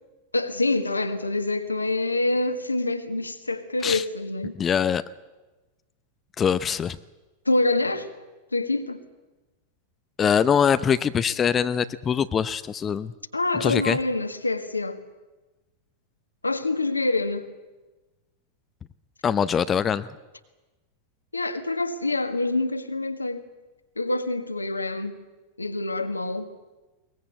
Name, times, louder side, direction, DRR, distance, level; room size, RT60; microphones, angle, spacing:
voice 1, 0.3-4.6 7.4-8.1 8.5-9.0 13.3-15.0 16.4-17.5 21.3-23.5 24.0-25.2 25.6-26.5, left 2 dB, 80° left, 8 dB, 1.6 m, -26 dB
voice 2, 4.5-5.0 6.4-7.0 10.2-13.1 13.5-14.0 19.2-20.2, left 7 dB, 25° left, 13 dB, 0.7 m, -23 dB
22.5 x 20.5 x 8.2 m, 1.2 s
figure-of-eight pair, 90°, 0 cm